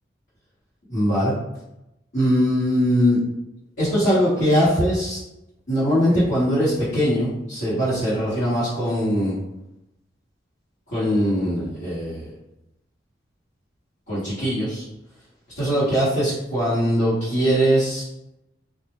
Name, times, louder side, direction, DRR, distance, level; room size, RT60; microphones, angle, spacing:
voice 1, 0.9-1.3 2.1-3.2 3.8-5.2 5.7-9.4 10.9-12.2 14.1-14.8 15.5-18.1, equal, 70° left, -14 dB, 1.2 m, -21 dB
2.4 x 2.0 x 2.9 m, 0.90 s
head